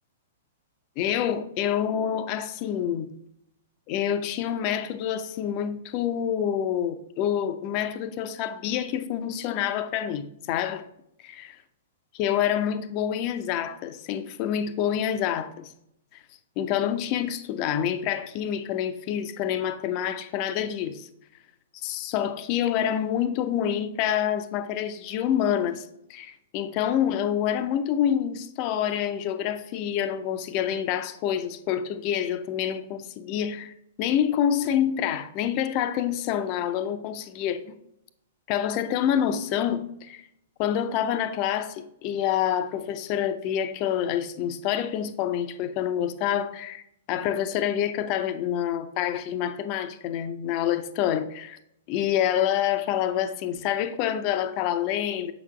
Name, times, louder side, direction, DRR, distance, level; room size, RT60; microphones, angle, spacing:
voice 1, 1.0-3.1 3.9-10.9 11.2-11.5 12.1-15.7 16.1-16.2 16.6-21.1 21.7-33.7 34.0-37.8 38.5-40.3 40.6-51.6 51.9-55.3, left 10 dB, 40° left, 0.5 m, -27 dB
7.5 x 5.9 x 2.3 m
figure-of-eight pair, 105°, 0 cm